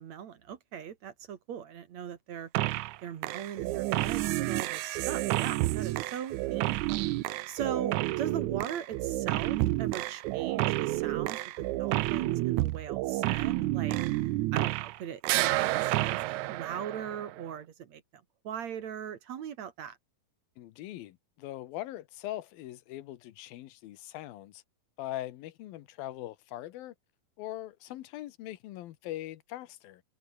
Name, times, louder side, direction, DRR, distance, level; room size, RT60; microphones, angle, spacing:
voice 1, 0.0-2.5 3.0-6.6 7.5-14.0 14.5-18.0 18.4-20.0, right 8 dB, 60° right, 2.5 m, -39 dB
sound 1, 2.5-3.0 3.2-15.0 15.2-17.4, right 18 dB, 80° right, 1.7 m, -30 dB
voice 2, 20.6-24.6 25.0-26.9 27.4-30.0, left 14 dB, 90° left, 2.9 m, -41 dB
omnidirectional pair, 4.2 m